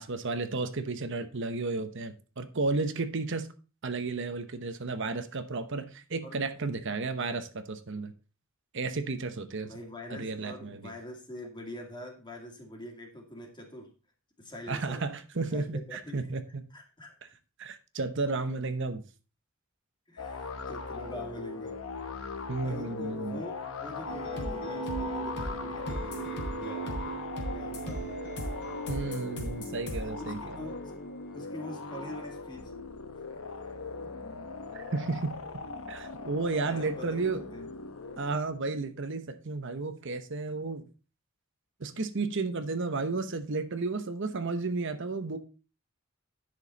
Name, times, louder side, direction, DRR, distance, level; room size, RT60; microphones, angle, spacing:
voice 1, 0.0-3.5 3.8-8.1 8.7-9.7 10.1-10.8 14.7-16.6 17.6-19.0 22.5-23.4 28.9-30.6 34.7-35.3 35.9-37.4 38.2-40.8 41.8-45.4, right 3 dB, 65° right, 9 dB, 0.9 m, -33 dB
voice 2, 9.6-13.9 14.4-15.1 15.3-16.3 16.7-17.2 20.1-21.8 22.6-27.2 27.5-28.2 30.0-30.9 31.3-32.7 33.3-33.4 36.7-37.7, left 1 dB, 20° left, 2 dB, 2.2 m, -44 dB
sound 1, 20.2-38.6, left 4 dB, 80° left, 1.0 m, -40 dB
sound 2, 24.1-31.4, right 1 dB, 60° left, 3.4 m, -37 dB
10.0 x 6.3 x 4.0 m, 0.34 s
head